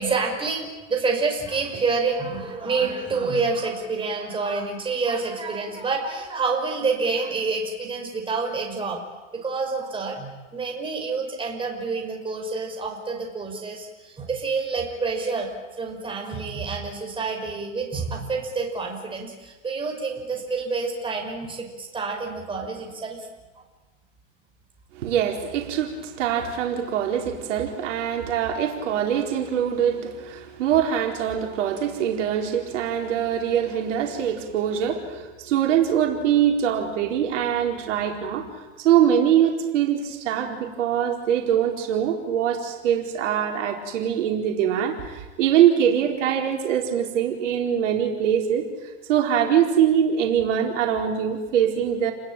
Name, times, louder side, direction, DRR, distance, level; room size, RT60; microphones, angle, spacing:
voice 1, 0.0-9.0 9.3-15.5 15.8-23.3, right 4 dB, 15° right, 1 dB, 5.7 m, -28 dB
voice 2, 24.9-38.5 38.8-48.7 49.1-52.1, right 9 dB, 65° right, 2 dB, 4.4 m, -23 dB
30.0 x 20.5 x 9.1 m, 1.2 s
hypercardioid pair, 130°, 39 cm